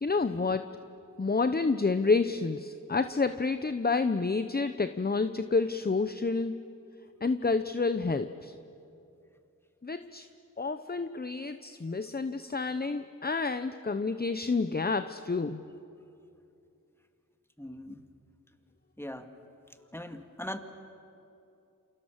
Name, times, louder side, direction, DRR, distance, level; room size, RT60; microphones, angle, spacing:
voice 1, 0.0-0.7 1.2-6.5 7.2-8.5 9.8-10.3 10.6-15.6, left 4 dB, 30° left, 10 dB, 0.9 m, -29 dB
voice 2, 17.6-18.0 19.0-19.3 19.9-20.6, left 1 dB, 5° left, 6 dB, 2.2 m, -40 dB
29.0 x 27.5 x 7.4 m, 2.7 s
cardioid pair, 50°, 33 cm